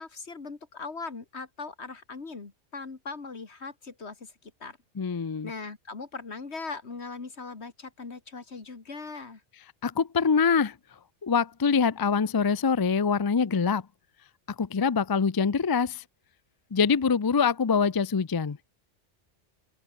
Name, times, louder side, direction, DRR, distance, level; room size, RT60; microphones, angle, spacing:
voice 1, 0.0-4.8 5.4-9.4, left 4 dB, 65° left, 2.5 m, -40 dB
voice 2, 5.0-5.5 9.8-10.8 11.2-13.8 14.6-16.0 16.7-18.6, left 5 dB, 35° left, 0.3 m, -24 dB
open air
omnidirectional pair, 1.2 m